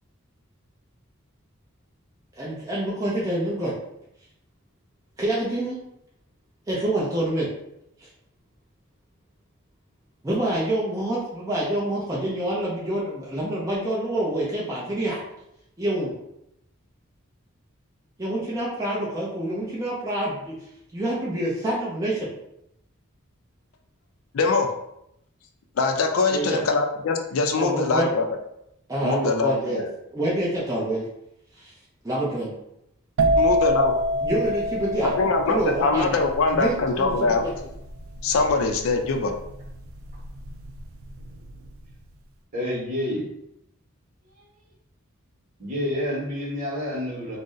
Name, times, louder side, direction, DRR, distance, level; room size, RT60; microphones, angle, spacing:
voice 1, 2.4-3.7 5.2-5.8 6.7-7.5 10.2-15.2 15.8-16.1 18.2-20.5 20.9-22.3 26.3-26.6 27.6-28.1 28.9-29.8 30.1-31.0 31.6-31.7 32.0-32.5 34.2-35.1 35.5-36.2 36.5-37.5, right 1 dB, 15° right, -7 dB, 0.5 m, -27 dB
voice 2, 24.3-24.7 25.8-28.3 29.0-29.9 33.4-33.9 35.0-37.4 38.2-39.3, left 3 dB, 70° left, 5 dB, 0.4 m, -23 dB
sound 1, 33.2-40.8 41.0-41.5, equal, 70° right, 0.3 m, -26 dB
voice 3, 42.5-43.2 45.6-47.4, left 1 dB, 40° right, -4 dB, 1.1 m, -28 dB
2.5 x 2.0 x 3.7 m, 0.81 s
head